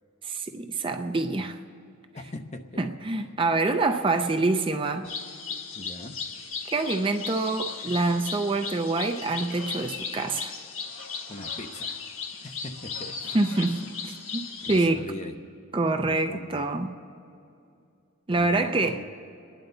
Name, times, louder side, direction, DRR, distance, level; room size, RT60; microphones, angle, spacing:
voice 1, 0.2-1.6 2.8-5.1 6.7-10.5 13.3-15.0 15.7-17.0 18.3-19.0, right 3 dB, 25° right, 6 dB, 0.5 m, -26 dB
voice 2, 2.1-2.8 5.7-6.1 11.3-12.0 12.4-13.4 14.7-15.4 15.9-16.6 18.3-19.0, left 1 dB, 35° left, 5 dB, 0.8 m, -40 dB
sound 1, 5.0-14.9, left 5 dB, 80° left, 1.3 m, -36 dB
28.5 x 10.5 x 4.0 m, 2.6 s
head